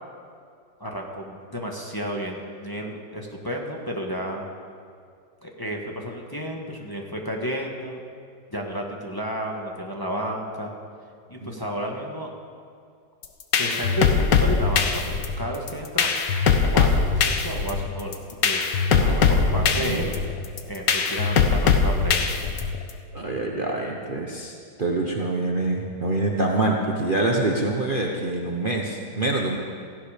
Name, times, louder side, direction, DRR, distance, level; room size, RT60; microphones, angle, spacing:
voice 1, 0.8-4.4 5.4-8.0 8.5-10.7 11.3-12.3 13.6-16.1 16.7-18.8 19.3-20.1 20.7-22.3, equal, 15° left, -1 dB, 1.5 m, -32 dB
sound 1, 13.2-22.9, left 5 dB, 90° left, 1.8 m, -21 dB
voice 2, 18.9-19.5 19.8-20.0 23.1-29.6, right 2 dB, 35° right, 0 dB, 1.1 m, -26 dB
17.5 x 15.5 x 5.1 m, 2.3 s
omnidirectional pair, 1.8 m